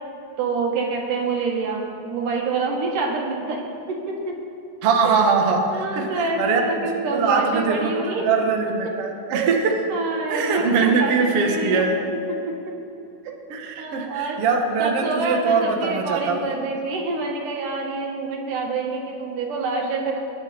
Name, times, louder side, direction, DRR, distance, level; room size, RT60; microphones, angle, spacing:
voice 1, 0.4-3.6 3.9-4.4 5.0-5.3 5.7-8.3 9.3-9.6 9.9-11.8 12.5-12.6 13.2-13.4 13.8-14.4 14.8-20.2, right 3 dB, 85° right, 0 dB, 3.4 m, -27 dB
voice 2, 4.8-9.8 10.3-12.0 13.5-16.5, right 4 dB, 55° right, 2 dB, 2.0 m, -22 dB
23.5 x 10.5 x 4.3 m, 2.6 s
omnidirectional pair, 3.6 m